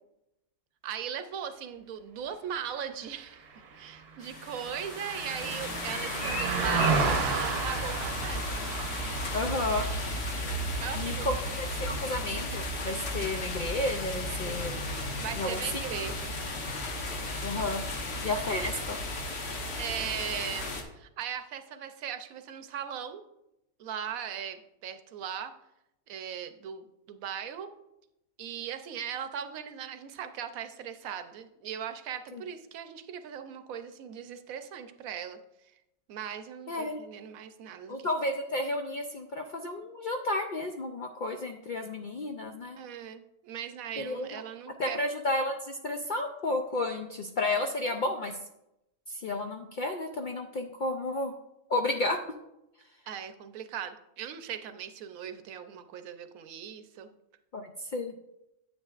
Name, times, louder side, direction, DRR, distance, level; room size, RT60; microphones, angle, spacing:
voice 1, 0.8-3.4 3.8-8.6 10.8-11.3 15.2-16.3 19.8-23.2 23.8-25.5 26.1-27.7 28.4-35.4 36.1-38.1 42.8-45.0 53.1-57.1, right 8 dB, 75° right, 9 dB, 1.1 m, -39 dB
Car passing by, 3.2-12.8 13.2-13.4, right 5 dB, 50° right, 0.9 m, -33 dB
sound 1, 4.2-20.8, left 1 dB, 50° left, 1.3 m, -34 dB
voice 2, 9.3-9.9 11.0-14.8 15.4-15.6 17.4-17.8 18.2-19.0 32.3-32.4 36.7-37.0 37.9-42.8 44.0-44.4 44.8-48.3 49.1-51.3 51.7-52.2 57.5-58.1, left 2 dB, 80° left, 4 dB, 0.4 m, -32 dB
9.6 x 8.0 x 2.4 m, 0.87 s
omnidirectional pair, 1.5 m